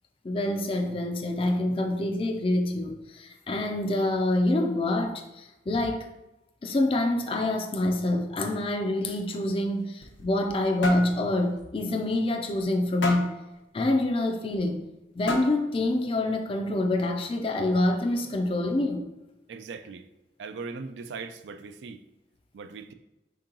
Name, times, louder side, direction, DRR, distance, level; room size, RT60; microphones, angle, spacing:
voice 1, 0.2-6.1 6.6-13.3 13.7-14.8 15.2-19.1, left 1 dB, 30° left, 4 dB, 0.4 m, -26 dB
sound 1, 9.8-10.6 10.8-11.1 11.6-11.7 12.1-12.2 13.0-13.4 14.5-14.6 15.3-15.7, left 2 dB, 85° left, 0.7 m, -30 dB
voice 2, 19.5-20.0 20.4-22.0 22.5-22.9, right 4 dB, 70° right, 10 dB, 0.3 m, -39 dB
4.5 x 2.9 x 3.8 m, 0.98 s
head